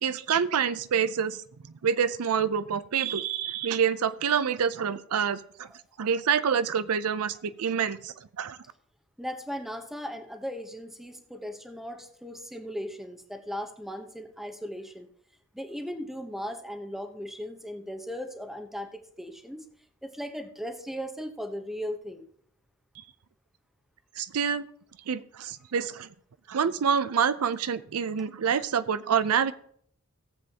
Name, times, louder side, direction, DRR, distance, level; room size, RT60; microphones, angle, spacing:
voice 1, 0.0-1.4 1.8-5.7 6.0-8.6 24.2-24.6 25.1-26.1 26.5-29.5, right 7 dB, 80° right, 14 dB, 0.5 m, -27 dB
voice 2, 9.2-15.1 15.5-19.7 20.0-22.3, equal, ahead, 5 dB, 1.0 m, -37 dB
17.5 x 7.6 x 2.9 m, 0.63 s
head